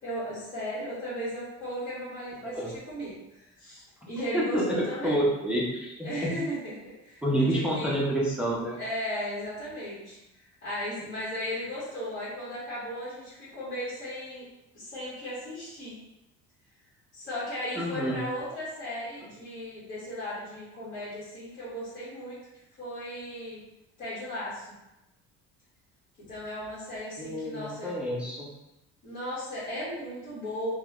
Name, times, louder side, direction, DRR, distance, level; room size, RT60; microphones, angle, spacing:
voice 1, 0.0-5.2 6.0-8.0 8.8-10.2 10.6-14.4 14.7-15.9 17.1-22.4 22.8-23.6 24.0-24.7 26.3-27.9 29.0-30.7, equal, 55° left, -11 dB, 1.4 m, -36 dB
voice 2, 2.4-2.7 4.0-6.3 7.2-8.8 17.8-18.2 27.2-28.5, right 1 dB, 5° right, -4 dB, 0.5 m, -28 dB
3.1 x 2.2 x 2.3 m, 0.93 s
cardioid pair, 105°, 30 cm